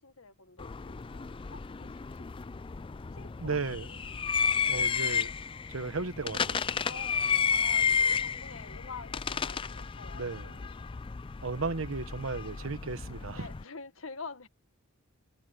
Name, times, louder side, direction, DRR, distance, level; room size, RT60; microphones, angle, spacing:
voice 1, 0.0-2.3 3.1-3.9 6.8-10.9 13.3-14.5, left 4 dB, 85° left, 1.8 m, -47 dB
sound 1, 0.6-13.6, left 6 dB, 25° left, 0.4 m, -32 dB
voice 2, 3.4-4.0 4.4-5.3 5.7-6.7 10.1-10.6 11.4-13.5, right 4 dB, 85° right, 1.1 m, -35 dB
head